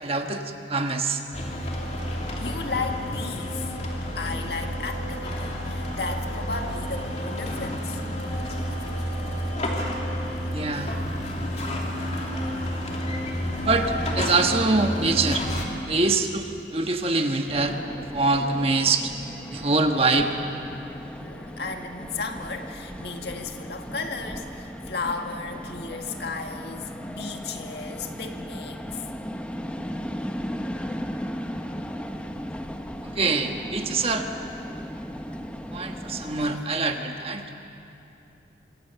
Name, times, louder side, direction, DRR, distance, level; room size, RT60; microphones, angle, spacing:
voice 1, 0.0-1.2 10.5-10.9 13.6-15.5 15.9-17.8 18.1-19.1 19.5-20.3 33.1-34.3 35.7-37.4, right 3 dB, 30° right, 5 dB, 1.3 m, -24 dB
sound 1, 1.3-15.6, equal, 35° left, 2.9 m, -30 dB
voice 2, 2.1-3.7 4.2-8.0 15.5-16.0 21.2-29.2 36.5-36.6, left 4 dB, 65° left, 4 dB, 1.9 m, -34 dB
sound 2, 17.5-36.6, equal, 5° left, 1.0 m, -36 dB
25.5 x 25.0 x 6.9 m, 2.9 s
head